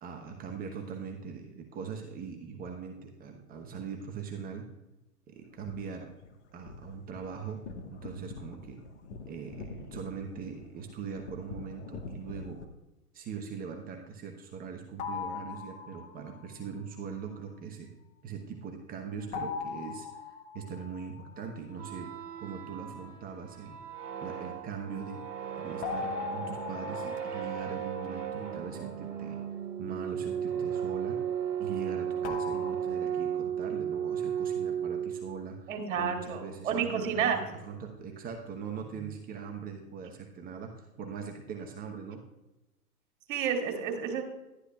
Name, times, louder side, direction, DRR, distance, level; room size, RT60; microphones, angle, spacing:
voice 1, 0.0-4.7 5.3-6.1 6.5-7.6 7.9-8.8 9.3-12.6 13.1-17.9 18.2-23.8 24.2-25.2 25.6-29.4 29.8-31.3 31.6-42.2, right 6 dB, 20° right, 2 dB, 1.0 m, -41 dB
sound 1, 5.4-12.6, left 3 dB, 50° left, 1.4 m, -46 dB
sound 2, 15.0-16.5 19.3-21.8 25.8-29.0 32.2-32.7, left 6 dB, 15° left, 0.6 m, -40 dB
sound 3, 21.7-35.5, right 8 dB, 70° right, 1.6 m, -35 dB
voice 2, 35.7-37.4 43.3-44.2, right 7 dB, 55° right, 4 dB, 2.9 m, -30 dB
12.0 x 11.5 x 2.3 m, 0.97 s
hypercardioid pair, 125°, 47 cm